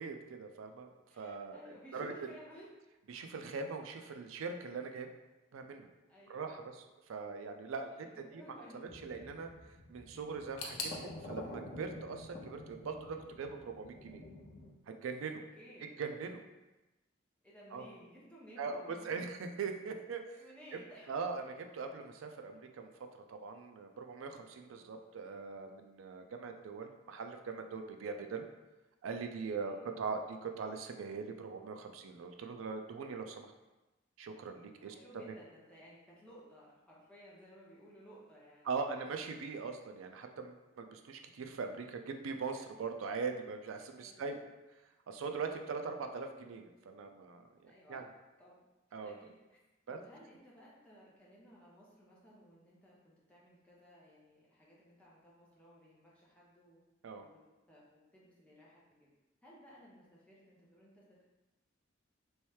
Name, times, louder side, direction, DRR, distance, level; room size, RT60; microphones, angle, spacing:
voice 1, 0.0-0.9 1.2-2.1 3.1-5.1 5.5-5.9 6.3-8.1 8.3-8.4 8.7-9.5 9.9-10.8 11.2-14.2 15.0-15.4 16.0-16.4 17.7-17.8 18.6-20.4 21.1-22.9 23.3-28.4 29.0-33.5 34.2-34.9 35.2-35.3 38.6-44.4 45.1-48.0 48.9-49.1 49.9-50.0 57.0-57.3, right 4 dB, 85° right, 5 dB, 0.4 m, -41 dB
voice 2, 1.1-2.7 6.1-6.5 7.9-8.8 15.5-15.9 17.4-19.2 20.3-21.1 24.7-24.9 29.6-29.9 34.8-38.7 44.0-44.2 47.7-48.0 48.4-48.6 49.0-49.6 49.9-56.8 57.2-59.1 59.4-61.2, equal, 5° left, -6 dB, 0.8 m, -57 dB
sound 1, 8.9-14.7, left 2 dB, 40° left, 0.5 m, -49 dB
sound 2, 10.6-13.4 13.7-14.5 14.8-14.9 15.8-15.9, left 3 dB, 85° left, 0.6 m, -47 dB
3.1 x 3.1 x 3.1 m, 1.1 s
head